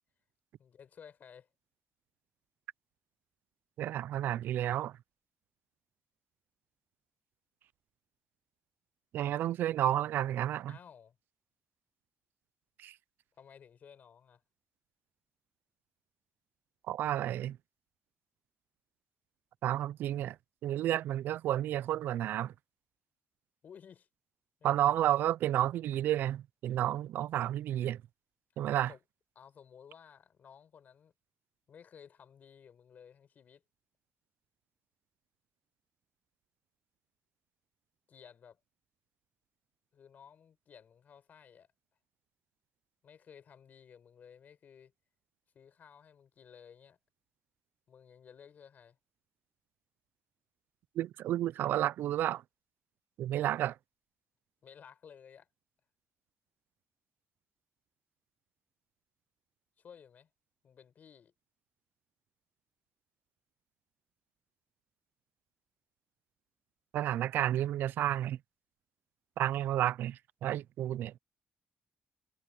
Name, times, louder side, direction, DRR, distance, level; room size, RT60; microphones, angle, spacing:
voice 1, 0.6-1.5 10.7-11.2 13.3-14.4 23.6-24.1 24.6-24.7 28.9-29.0 29.3-31.1 31.7-33.6 38.1-38.6 39.9-41.7 43.0-44.9 45.5-47.0 47.9-49.0 54.6-55.5 59.8-60.3 60.6-61.3, left 7 dB, 55° left, 4.6 m, -56 dB
voice 2, 3.8-5.0 9.1-10.8 12.8-13.0 16.9-17.6 19.6-20.4 20.6-22.5 24.6-28.0 28.6-28.9 51.0-52.4 53.2-53.8 66.9-68.4 69.4-71.1, right 12 dB, 85° right, 0.4 m, -31 dB
cardioid pair, 110°, 3 cm